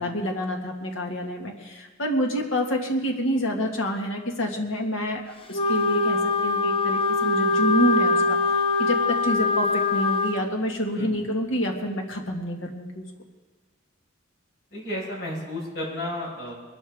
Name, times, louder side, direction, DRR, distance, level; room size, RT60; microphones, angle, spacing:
voice 1, 0.0-13.1, equal, 80° left, 1 dB, 1.8 m, -28 dB
Wind instrument woodwind instrument, 5.5-10.4, left 3 dB, 25° left, 0.7 m, -23 dB
voice 2, 14.7-16.5, left 1 dB, 55° left, -3 dB, 5.3 m, -32 dB
22.0 x 13.0 x 3.6 m, 1.3 s
head